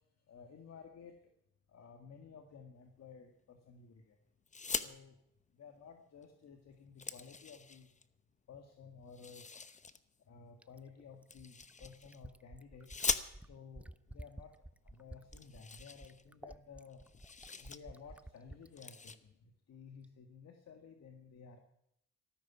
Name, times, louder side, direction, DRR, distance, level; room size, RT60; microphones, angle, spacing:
voice 1, 0.3-1.1 1.7-4.1 4.8-5.2 5.6-7.9 8.5-9.5 10.3-12.9 13.5-14.5 14.8-17.0 17.5-19.3 19.7-21.6, left 6 dB, 60° left, 4 dB, 2.0 m, -54 dB
sound 1, 4.5-4.9 6.2-6.3 6.6-8.0 9.1-10.0 11.3-12.2 12.9-13.7 14.6-14.7 14.9-15.0 15.3-16.6 16.9-17.8 18.2-18.4 18.7-19.2, left 4 dB, 25° left, 1.0 m, -41 dB
Fill (with liquid), 10.6-18.7 20.0-20.1, right 1 dB, 5° right, 0.5 m, -52 dB
14.5 x 13.0 x 5.9 m, 0.76 s
cardioid pair, 90°, 30 cm